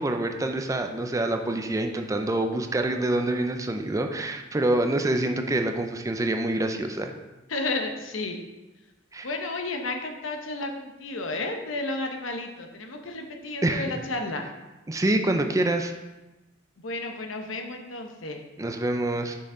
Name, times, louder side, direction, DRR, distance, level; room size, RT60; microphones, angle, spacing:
voice 1, 0.0-7.1 9.1-9.3 13.6-14.0 14.9-15.9 18.6-19.4, right 1 dB, 15° right, 5 dB, 0.4 m, -26 dB
voice 2, 7.5-8.4 9.2-14.4 16.8-18.4, left 2 dB, 90° left, 4 dB, 0.9 m, -32 dB
6.3 x 5.6 x 3.8 m, 1.1 s
head